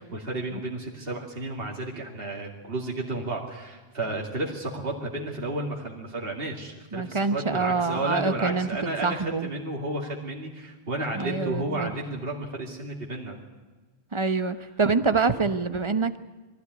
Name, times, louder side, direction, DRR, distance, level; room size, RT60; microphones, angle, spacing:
voice 1, 0.0-13.4, right 2 dB, 65° right, -1 dB, 2.6 m, -32 dB
voice 2, 6.9-8.7 9.0-9.5 11.2-11.9 14.1-16.2, right 4 dB, 30° right, 11 dB, 1.0 m, -26 dB
22.0 x 15.5 x 9.5 m, 1.3 s
omnidirectional pair, 1.1 m